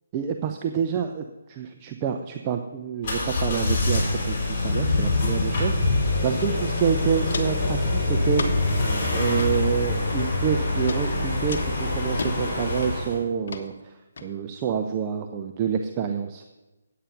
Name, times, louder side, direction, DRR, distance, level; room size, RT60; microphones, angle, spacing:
voice 1, 0.1-8.5 9.1-16.4, right 8 dB, 25° right, 5 dB, 0.6 m, -28 dB
sound 1, 3.0-13.2, left 2 dB, 35° left, 4.6 m, -25 dB
Walk footsteps, 6.4-6.5 6.8-7.7 8.3-8.8 9.2-9.5 10.2-10.5 10.9-11.0 11.5-12.3 12.8-13.1 13.5-13.6 14.2-14.3, left 4 dB, 55° left, 1.3 m, -34 dB
9.1 x 8.5 x 5.9 m, 1.1 s
figure-of-eight pair, 150°, 0 cm